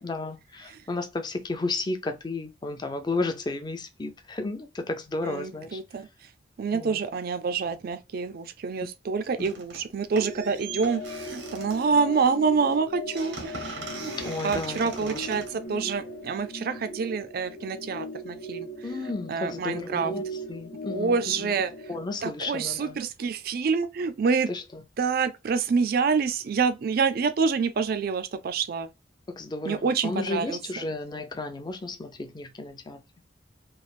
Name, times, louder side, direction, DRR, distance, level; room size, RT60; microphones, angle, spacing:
voice 1, 0.0-5.8 6.7-7.0 9.4-9.6 13.8-13.9 14.2-15.5 18.8-21.5 21.9-23.0 24.5-24.8 29.3-33.0, left 3 dB, 25° left, 0.5 m, -33 dB
voice 2, 5.2-6.1 6.6-14.1 14.4-18.7 19.0-20.1 20.9-21.7 22.2-24.5 25.0-28.9 29.7-30.6, right 5 dB, 55° right, 0.4 m, -27 dB
sound 1, 9.4-9.9 10.2-16.4, right 3 dB, 90° right, 0.9 m, -41 dB
sound 2, 10.1-22.0, left 1 dB, 60° left, 0.7 m, -39 dB
3.2 x 2.4 x 2.4 m
head